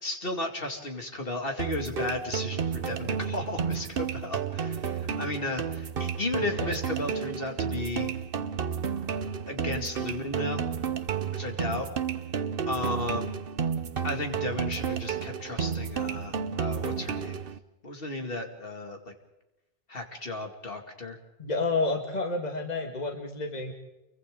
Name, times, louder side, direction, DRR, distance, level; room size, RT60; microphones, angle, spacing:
voice 1, 0.0-8.1 9.5-10.6 11.3-11.9 12.7-13.3 14.0-17.4 17.8-19.0 19.9-21.2, left 2 dB, 65° left, 3 dB, 2.6 m, -34 dB
sound 1, 1.6-17.6, right 7 dB, 65° right, 1.1 m, -32 dB
voice 2, 6.4-6.8 21.4-23.7, left 3 dB, 45° left, 2 dB, 2.0 m, -30 dB
30.0 x 23.5 x 3.8 m, 0.97 s
omnidirectional pair, 1.0 m